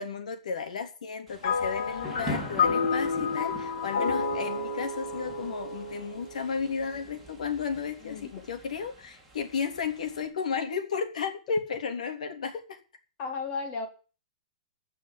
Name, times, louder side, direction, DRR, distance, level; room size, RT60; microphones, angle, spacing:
voice 1, 0.0-12.5, left 6 dB, 85° left, 7 dB, 3.2 m, -33 dB
Thunder / Rain, 1.3-10.3, right 1 dB, 5° right, 3.3 m, -44 dB
sound 1, 1.4-6.9, left 4 dB, 50° left, 2.6 m, -30 dB
voice 2, 8.0-8.5 12.5-12.6 13.2-13.9, left 4 dB, 25° left, 7 dB, 2.0 m, -35 dB
16.0 x 6.2 x 9.9 m, 0.36 s
hypercardioid pair, 175°, 4 cm